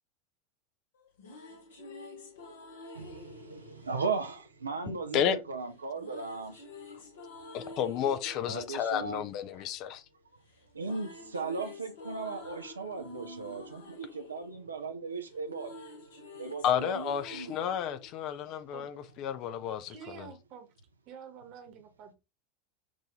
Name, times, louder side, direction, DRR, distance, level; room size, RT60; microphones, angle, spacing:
sound 1, 0.9-5.1 6.0-10.2 10.5-19.0, left 2 dB, 75° left, 1.2 m, -49 dB
voice 1, 2.9-6.6 8.4-9.2 10.7-15.8 16.4-17.7, right 4 dB, 85° right, 0.6 m, -37 dB
voice 2, 7.5-10.0 16.6-19.9, left 9 dB, 50° left, 0.5 m, -31 dB
voice 3, 19.9-20.7 21.1-22.1, right 7 dB, 50° right, 1.3 m, -48 dB
6.2 x 2.6 x 3.1 m
hypercardioid pair, 85°, 0 cm